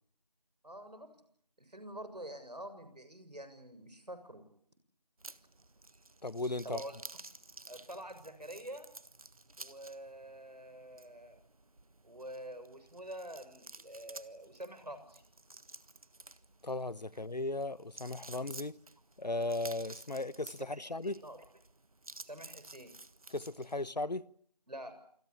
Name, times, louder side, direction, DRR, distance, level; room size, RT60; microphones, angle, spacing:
voice 1, 0.6-1.1 1.6-4.4 6.6-7.0 7.7-8.9 9.6-11.4 12.0-15.2 20.7-21.4 22.2-22.9 24.7-24.9, right 1 dB, 80° right, 7.1 m, -47 dB
sound 1, 5.2-23.9, right 2 dB, 60° right, 1.4 m, -53 dB
voice 2, 6.2-6.8 16.6-18.8 19.2-21.2 23.3-24.3, left 2 dB, 85° left, 1.1 m, -36 dB
27.5 x 21.5 x 8.6 m
figure-of-eight pair, 170°, 21 cm